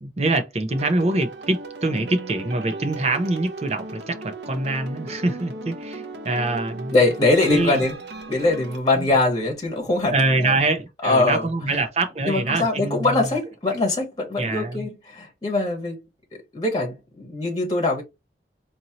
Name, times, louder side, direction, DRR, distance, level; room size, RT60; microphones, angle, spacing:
voice 1, 0.0-7.0 7.4-7.8 9.1-9.2 10.1-13.2 14.4-14.9, right 2 dB, 35° right, 0.6 m, -24 dB
sound 1, 0.7-8.8, right 2 dB, 70° right, 0.7 m, -36 dB
voice 2, 6.9-8.0 8.3-10.6 11.0-11.8 12.2-16.0 16.5-18.0, left 2 dB, 20° left, 1.3 m, -22 dB
4.3 x 2.7 x 2.8 m
head